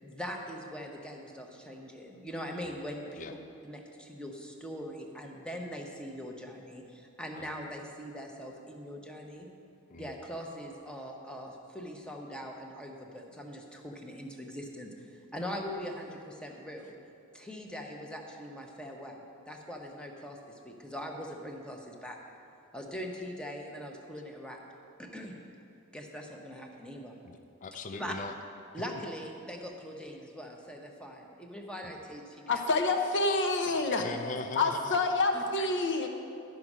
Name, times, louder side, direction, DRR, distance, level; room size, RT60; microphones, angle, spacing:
voice 1, 0.0-3.3 3.6-9.5 9.9-16.9 17.3-22.2 22.7-24.6 25.0-25.4 25.9-27.2 28.0-28.1 28.7-32.6 35.3-35.4, equal, 5° left, 1 dB, 0.9 m, -42 dB
voice 2, 27.2-28.3 34.0-35.0, left 3 dB, 35° left, 6 dB, 0.4 m, -40 dB
voice 3, 32.5-34.0 34.6-36.1, left 3 dB, 55° left, 4 dB, 0.8 m, -27 dB
11.5 x 5.3 x 6.0 m, 2.6 s
head